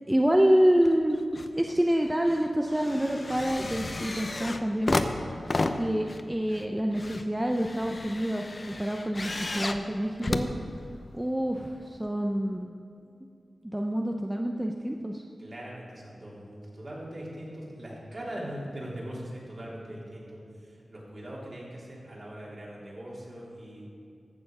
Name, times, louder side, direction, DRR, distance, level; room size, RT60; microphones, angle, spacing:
voice 1, 0.1-1.2 1.5-5.0 5.8-10.5 11.1-12.7 13.7-15.2, equal, 10° right, 2 dB, 0.6 m, -27 dB
sound 1, 0.8-1.5 1.9-11.3 12.1-12.2, left 2 dB, 35° left, 0.6 m, -33 dB
voice 2, 15.4-23.9, right 1 dB, 45° right, -5 dB, 3.3 m, -41 dB
14.5 x 6.9 x 5.5 m, 2.5 s
wide cardioid pair, 85°, 0 cm